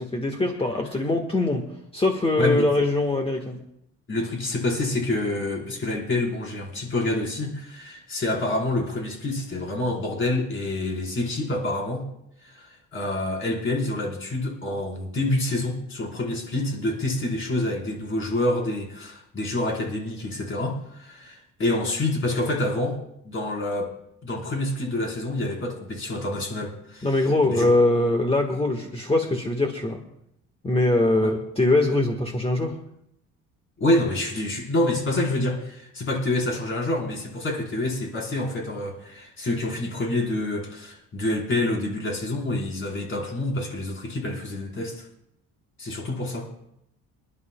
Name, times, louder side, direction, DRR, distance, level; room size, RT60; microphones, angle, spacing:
voice 1, 0.0-1.7 1.9-3.6 27.0-30.0 30.6-32.8, left 2 dB, 20° left, 3 dB, 1.5 m, -22 dB
voice 2, 2.4-2.7 4.1-12.1 12.4-23.0 23.2-23.9 24.2-27.7 31.1-31.3 33.8-45.1 45.8-46.5, left 1 dB, 40° left, -1 dB, 4.4 m, -27 dB
28.5 x 11.0 x 2.3 m, 0.79 s
cardioid pair, 100°, 32 cm